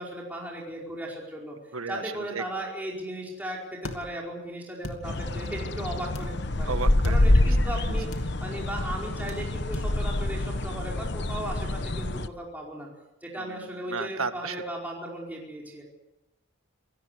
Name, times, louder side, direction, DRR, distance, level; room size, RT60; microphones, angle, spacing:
voice 1, 0.0-1.6 1.9-6.8 7.0-12.9 13.2-15.8, right 1 dB, 10° right, -3 dB, 4.9 m, -36 dB
sound 1, 3.8-4.0 4.8-5.0 6.1-6.3 7.0-7.2 8.1-8.3 9.3-9.4 9.7-9.9, left 1 dB, 80° left, 2.7 m, -36 dB
sound 2, 5.0-12.3, left 1 dB, 55° left, 1.1 m, -26 dB
voice 2, 6.7-7.5 13.4-13.6 13.9-14.6, right 4 dB, 90° right, 9 dB, 1.8 m, -33 dB
28.0 x 18.0 x 8.3 m, 0.94 s
head